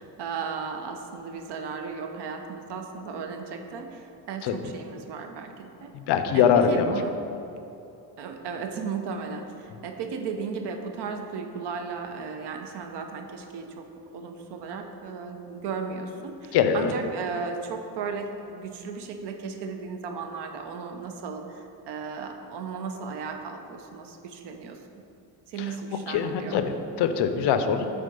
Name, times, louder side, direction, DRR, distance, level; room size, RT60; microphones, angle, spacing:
voice 1, 0.0-6.0 6.3-7.1 8.2-25.0 25.5-26.6, right 5 dB, 80° right, 5 dB, 0.7 m, -35 dB
voice 2, 6.1-6.9 16.5-16.9 26.1-27.9, left 7 dB, 85° left, 8 dB, 0.6 m, -22 dB
7.0 x 3.7 x 5.3 m, 2.8 s
cardioid pair, 115°, 40 cm